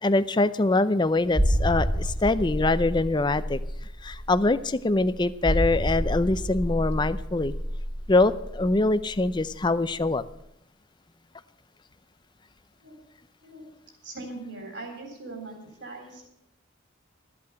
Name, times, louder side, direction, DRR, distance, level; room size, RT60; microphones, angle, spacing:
voice 1, 0.0-3.6 4.0-7.5 8.1-10.2, left 2 dB, 20° left, 14 dB, 0.5 m, -24 dB
sound 1, 1.3-9.7 10.0-10.2, equal, 15° right, 2.1 m, -29 dB
voice 2, 14.0-16.3, right 2 dB, 55° right, 3 dB, 3.8 m, -40 dB
13.5 x 8.5 x 7.7 m, 0.80 s
head